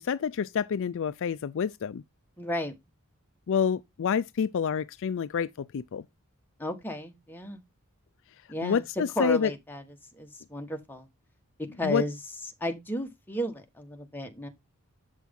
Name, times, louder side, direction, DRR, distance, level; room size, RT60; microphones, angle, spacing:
voice 1, 0.0-2.0 3.5-6.0 8.6-9.5 11.8-12.0, left 7 dB, 60° left, 0.4 m, -28 dB
voice 2, 2.4-2.7 6.6-7.6 8.5-9.8 10.1-11.1 11.8-12.2 12.6-14.5, equal, 10° left, 1.3 m, -33 dB
8.1 x 6.1 x 3.6 m
head